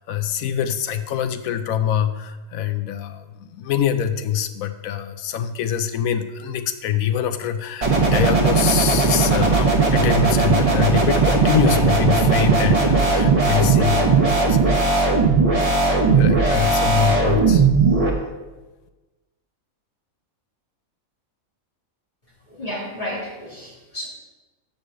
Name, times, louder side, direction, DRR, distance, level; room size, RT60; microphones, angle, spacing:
voice 1, 0.0-15.2 16.0-17.7, left 9 dB, 80° left, 10 dB, 1.1 m, -24 dB
sound 1, 7.8-18.1, right 4 dB, 30° right, 1.1 m, -17 dB
voice 2, 22.5-24.1, left 1 dB, 35° left, -6 dB, 2.8 m, -32 dB
6.2 x 5.5 x 6.8 m, 1.2 s
omnidirectional pair, 1.4 m